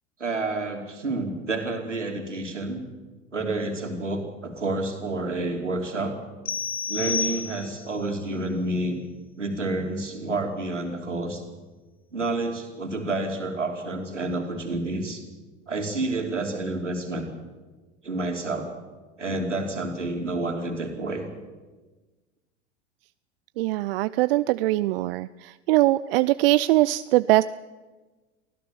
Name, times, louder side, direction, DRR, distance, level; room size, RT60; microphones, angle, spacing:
voice 1, 0.2-2.8 3.3-6.2 6.9-9.0 9.4-11.4 12.1-15.2 15.7-17.2 18.0-18.7 19.2-21.3, right 2 dB, 85° right, 4 dB, 3.2 m, -29 dB
sound 1, 6.4-8.0, left 5 dB, 90° left, 0.8 m, -30 dB
voice 2, 23.6-27.4, right 18 dB, 55° right, 16 dB, 0.5 m, -22 dB
24.0 x 15.5 x 7.2 m, 1.3 s
figure-of-eight pair, 85°, 35 cm